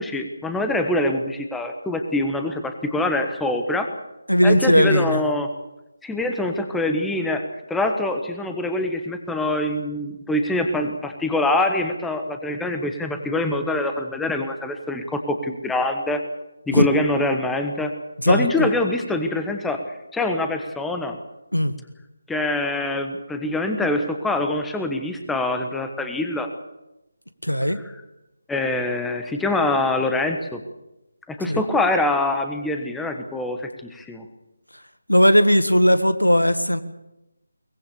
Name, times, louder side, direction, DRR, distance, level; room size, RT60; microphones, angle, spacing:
voice 1, 0.0-3.9 4.4-5.5 6.0-16.2 16.7-17.9 18.2-21.2 22.3-26.5 27.7-27.8 28.5-30.6 31.3-34.3, left 2 dB, 5° left, 5 dB, 1.3 m, -24 dB
voice 2, 4.3-5.2 16.7-16.9 18.2-18.7 21.5-21.7 27.4-27.8 31.5-31.6 35.1-36.8, equal, 85° left, 11 dB, 1.9 m, -17 dB
22.5 x 20.5 x 7.1 m, 0.95 s
figure-of-eight pair, 155°, 0 cm